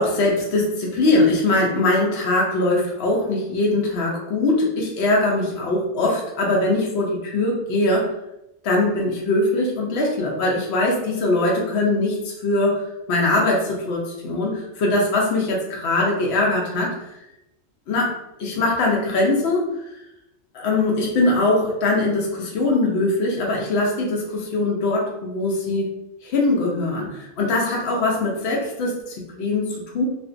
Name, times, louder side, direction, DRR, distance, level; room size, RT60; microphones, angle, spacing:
voice 1, 0.0-8.1 8.6-17.2 17.9-18.1 18.4-19.7 20.5-25.9 26.2-30.1, left 2 dB, 75° left, -2 dB, 0.8 m, -21 dB
2.4 x 2.1 x 2.4 m, 0.89 s
omnidirectional pair, 1.1 m